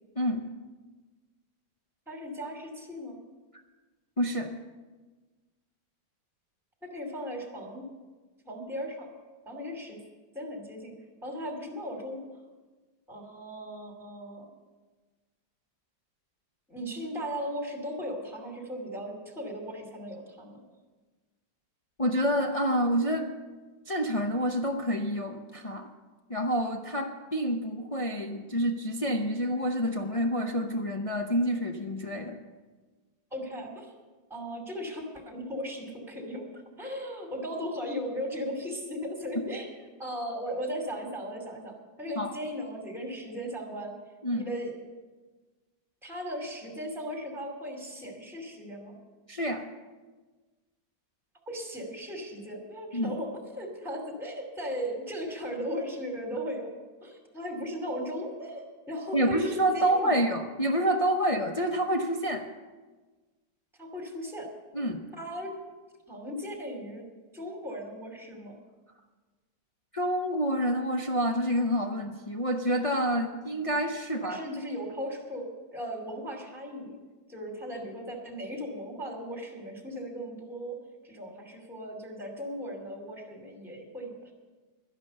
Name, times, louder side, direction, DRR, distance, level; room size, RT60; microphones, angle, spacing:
voice 1, 0.2-0.5 4.2-4.5 22.0-23.3 23.9-25.9 26.3-32.4 42.2-42.3 44.2-44.4 49.3-49.6 52.9-53.2 59.1-62.5 64.7-65.0 69.9-74.4, equal, 50° left, 3 dB, 0.4 m, -28 dB
voice 2, 2.1-3.2 6.8-7.9 8.5-9.1 9.5-10.0 10.3-10.9 11.2-12.2 13.1-14.5 16.7-20.6 33.3-33.9 34.3-36.5 36.8-39.7 40.0-44.0 44.3-44.7 46.0-49.0 51.5-56.7 57.0-60.2 63.8-64.5 65.1-65.5 66.1-67.1 67.3-68.6 74.2-75.4 75.7-77.0 77.3-80.8 81.0-84.3, equal, ahead, 2 dB, 2.4 m, -37 dB
12.0 x 11.0 x 6.8 m, 1.3 s
omnidirectional pair, 1.9 m